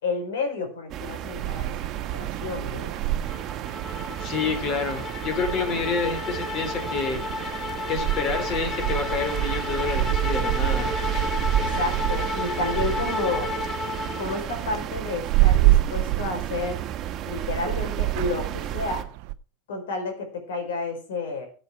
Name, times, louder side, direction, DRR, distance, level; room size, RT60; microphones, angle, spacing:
voice 1, 0.0-2.9 11.6-13.5 14.2-16.8 17.2-19.0 19.7-21.5, left 3 dB, 85° left, 4 dB, 5.0 m, -31 dB
sound 1, 0.9-19.0, right 10 dB, 40° right, 1.4 m, -32 dB
sound 2, 1.4-19.3, right 16 dB, 60° right, 0.8 m, -28 dB
sound 3, 3.3-14.6, left 3 dB, 25° left, 1.7 m, -32 dB
voice 2, 4.1-7.2 7.9-10.9, left 5 dB, 45° left, 6 dB, 4.0 m, -28 dB
14.5 x 7.6 x 4.7 m, 0.37 s
supercardioid pair, 120°, 0 cm